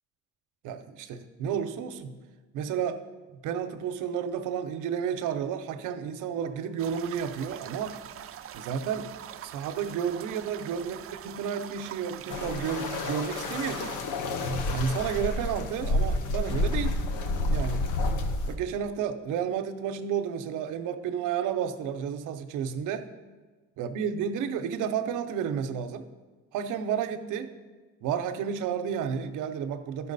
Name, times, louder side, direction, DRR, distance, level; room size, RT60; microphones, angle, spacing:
voice 1, 0.6-2.1 2.5-3.0 3.4-8.0 8.5-9.1 9.4-14.0 14.7-17.0 17.5-17.9 18.5-23.1 23.8-26.1 26.5-27.5 28.0-30.1, right 7 dB, 90° right, 9 dB, 0.6 m, -31 dB
sound 1, 6.8-14.0, right 10 dB, 50° right, 0.4 m, -43 dB
sound 2, 12.3-18.5, left 2 dB, 85° left, 0.9 m, -29 dB
12.0 x 5.7 x 4.0 m, 1.3 s
cardioid pair, 90°, 30 cm